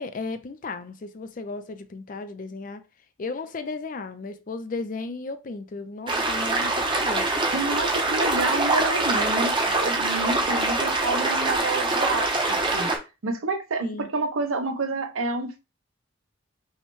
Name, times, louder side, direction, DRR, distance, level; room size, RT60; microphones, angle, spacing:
voice 1, 0.0-2.8 3.2-7.3 13.8-14.1, left 3 dB, 40° left, 0.4 m, -35 dB
sound 1, 6.1-13.0, right 2 dB, 25° right, 0.7 m, -24 dB
voice 2, 7.5-12.9 13.2-15.6, right 3 dB, 80° right, 0.7 m, -29 dB
5.5 x 2.1 x 3.1 m
head